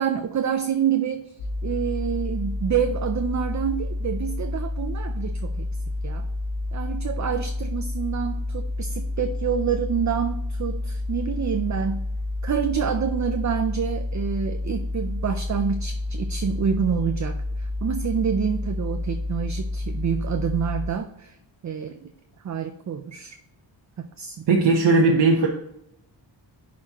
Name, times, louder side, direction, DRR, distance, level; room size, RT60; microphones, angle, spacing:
voice 1, 0.0-1.3 1.6-5.7 6.0-6.3 6.7-12.0 12.4-21.4 21.6-22.1 22.4-23.4 24.0-24.4, right 7 dB, 40° right, 7 dB, 0.5 m, -27 dB
sound 1, 1.4-20.9, left 2 dB, 85° left, 2.4 m, -29 dB
voice 2, 24.5-25.5, right 3 dB, 65° right, 0 dB, 1.0 m, -18 dB
10.5 x 4.2 x 2.9 m, 0.80 s
wide cardioid pair, 115°, 46 cm